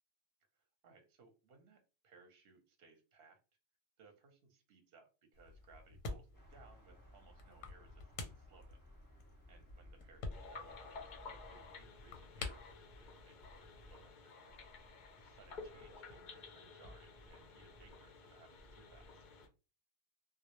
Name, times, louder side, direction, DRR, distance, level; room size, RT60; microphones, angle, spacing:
voice 1, 0.8-3.4 4.0-8.8 9.5-14.5 15.2-19.2, right 4 dB, 60° right, 5 dB, 0.7 m, -65 dB
sound 1, 5.3-14.1, left 3 dB, 90° left, 1.0 m, -50 dB
sound 2, 6.3-11.7, equal, 10° left, 0.5 m, -60 dB
sound 3, 10.3-19.5, left 4 dB, 60° left, 0.5 m, -53 dB
2.1 x 2.0 x 2.8 m, 0.32 s
omnidirectional pair, 1.3 m